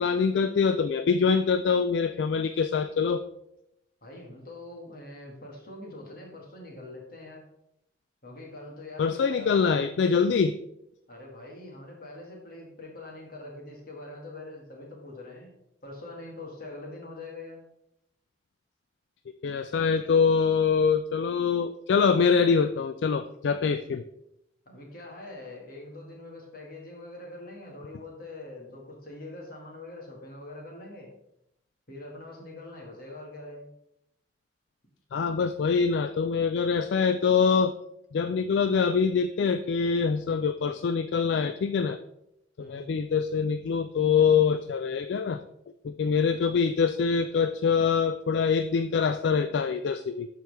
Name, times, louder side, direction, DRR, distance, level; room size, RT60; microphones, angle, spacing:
voice 1, 0.0-3.2 9.0-10.6 19.4-24.0 35.1-37.7 38.1-42.0 42.6-45.4 45.8-50.3, left 5 dB, 70° left, 10 dB, 0.3 m, -24 dB
voice 2, 4.0-7.4 8.2-9.8 11.1-15.5 15.8-17.6 24.7-31.1 31.9-33.7 42.6-42.9, left 2 dB, 55° left, 0 dB, 2.1 m, -43 dB
12.0 x 4.5 x 3.5 m, 0.80 s
head